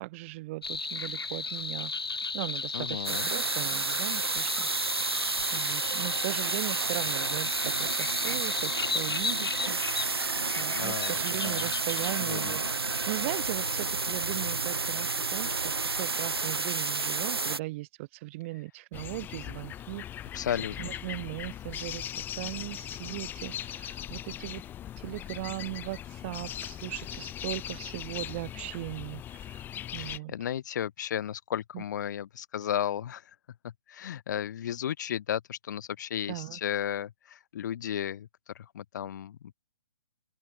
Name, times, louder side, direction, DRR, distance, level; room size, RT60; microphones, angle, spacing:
voice 1, 0.0-1.9 2.3-4.7 5.0-10.2 10.6-20.4 20.8-24.6 25.0-29.6 29.9-30.3 31.7-31.8 36.3-36.6, right 21 dB, 35° right, 3.5 m, -38 dB
sound 1, 0.6-15.0, left 4 dB, 80° left, 3.7 m, -36 dB
voice 2, 2.7-3.3 10.7-11.2 11.4-11.6 12.2-12.6 20.3-20.9 30.0-33.2 33.6-38.3 38.5-39.5, left 10 dB, 50° left, 3.2 m, -34 dB
sound 2, 3.0-17.6, right 4 dB, 85° right, 1.3 m, -31 dB
sound 3, 18.9-30.2, left 11 dB, 15° left, 2.3 m, -39 dB
open air
figure-of-eight pair, 135°, 13 cm